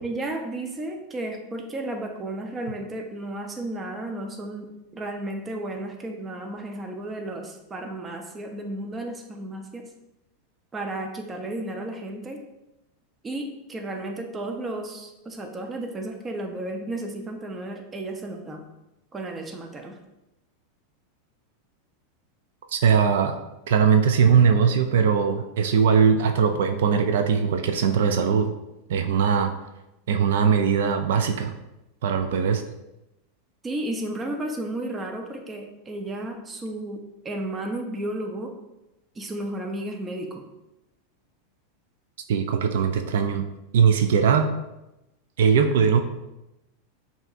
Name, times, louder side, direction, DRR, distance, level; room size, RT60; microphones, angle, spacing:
voice 1, 0.0-9.9 10.7-12.4 13.2-18.6 19.1-20.0 33.6-38.5 39.2-40.5, right 1 dB, 20° right, 3 dB, 0.6 m, -33 dB
voice 2, 22.7-23.4 23.7-28.5 28.9-29.5 30.1-31.5 32.0-32.6 42.3-43.4 43.7-44.5 45.4-46.0, right 6 dB, 80° right, 7 dB, 0.3 m, -20 dB
5.6 x 2.8 x 2.4 m, 0.94 s
supercardioid pair, 130°, 0 cm